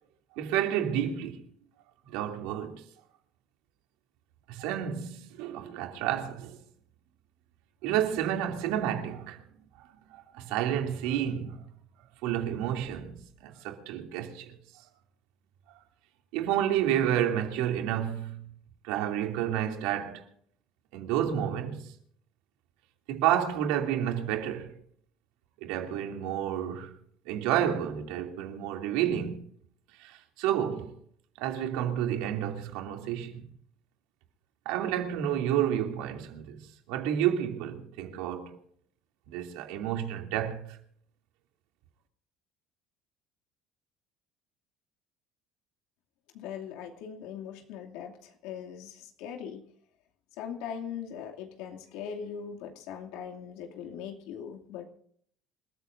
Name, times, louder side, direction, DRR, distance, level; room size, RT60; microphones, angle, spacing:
voice 1, 0.3-1.4 2.1-2.8 4.5-6.6 7.8-9.4 10.1-11.6 12.2-14.5 16.3-18.5 18.8-20.2 20.9-21.9 23.1-24.8 25.6-26.9 27.3-29.5 30.0-30.9 31.4-33.4 34.6-36.6 36.9-38.6 39.3-40.8, right 10 dB, 90° right, 2.8 m, -30 dB
voice 2, 46.3-49.6 50.4-54.9, left 8 dB, 80° left, 2.6 m, -40 dB
27.5 x 14.5 x 2.7 m
cardioid pair, 160°, 0 cm